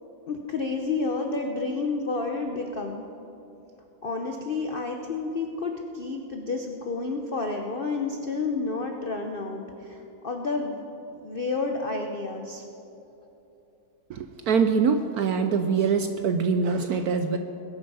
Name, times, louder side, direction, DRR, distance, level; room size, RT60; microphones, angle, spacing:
voice 1, 0.3-3.0 4.0-10.8 11.1-12.6, left 3 dB, 60° left, 3 dB, 0.5 m, -30 dB
voice 2, 14.1-17.4, right 5 dB, 70° right, 7 dB, 0.9 m, -24 dB
21.0 x 8.8 x 5.5 m, 3.0 s
omnidirectional pair, 2.1 m